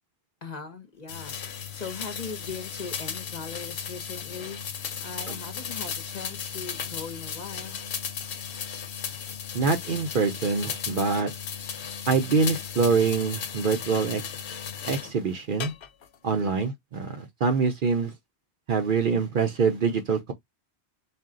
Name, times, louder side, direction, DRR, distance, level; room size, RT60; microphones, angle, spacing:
voice 1, 0.4-7.8 16.2-16.6, left 5 dB, 40° left, 0.8 m, -40 dB
sound 1, 1.1-15.1 15.6-16.1, left 7 dB, 65° left, 1.0 m, -36 dB
voice 2, 9.5-11.3 12.1-14.2 14.8-15.7 16.2-18.1 18.7-20.3, right 5 dB, 55° right, 0.7 m, -25 dB
4.2 x 2.2 x 3.7 m
omnidirectional pair, 1.2 m